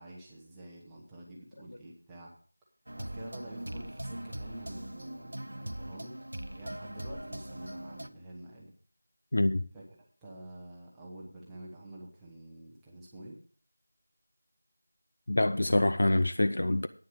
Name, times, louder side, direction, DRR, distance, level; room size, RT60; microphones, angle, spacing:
voice 1, 0.0-2.3 3.0-8.7 9.7-9.8 10.2-13.4, right 1 dB, 5° right, 1.1 m, -48 dB
sound 1, 2.9-8.1, right 1 dB, 90° right, 0.9 m, -41 dB
voice 2, 9.3-9.6 15.3-16.9, left 1 dB, 45° left, 0.6 m, -25 dB
9.4 x 6.5 x 7.8 m
figure-of-eight pair, 180°, 0 cm